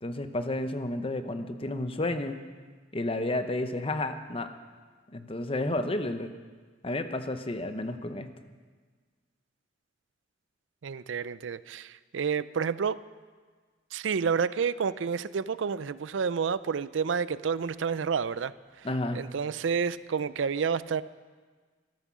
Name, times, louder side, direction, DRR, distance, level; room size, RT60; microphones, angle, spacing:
voice 1, 0.0-2.4 2.9-4.5 5.1-6.3 6.8-8.3 18.8-19.2, left 2 dB, 30° left, 8 dB, 0.8 m, -31 dB
voice 2, 10.8-13.0 13.9-18.5 19.1-21.0, right 6 dB, 85° right, 17 dB, 0.4 m, -29 dB
13.5 x 13.5 x 6.2 m, 1.5 s
head